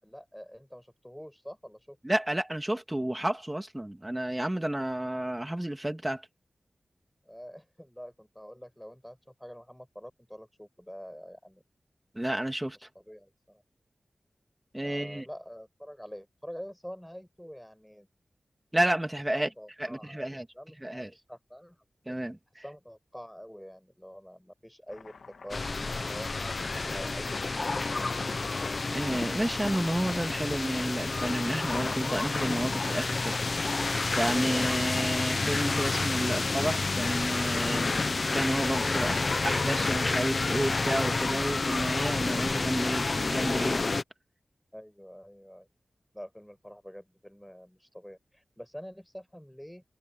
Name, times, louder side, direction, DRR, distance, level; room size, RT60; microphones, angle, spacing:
voice 1, 0.0-2.0 7.2-11.6 12.7-13.6 14.8-18.1 19.3-21.8 22.5-27.4 27.9-28.3 44.7-45.7 46.1-49.8, equal, 5° left, 5.9 m, -46 dB
voice 2, 2.0-6.3 12.1-12.8 14.7-15.3 18.7-19.5 19.8-20.5 20.8-21.1 22.1-22.6 28.9-33.3 34.2-43.9, right 1 dB, 15° right, 2.1 m, -31 dB
Domestic sounds home sounds, 24.9-31.3 33.0-34.1 35.8-38.1 38.9-40.5 40.9-42.7, left 5 dB, 90° left, 2.0 m, -50 dB
sound 1, 25.5-44.0, left 3 dB, 50° left, 1.1 m, -29 dB
wide cardioid pair, 85°, 0 cm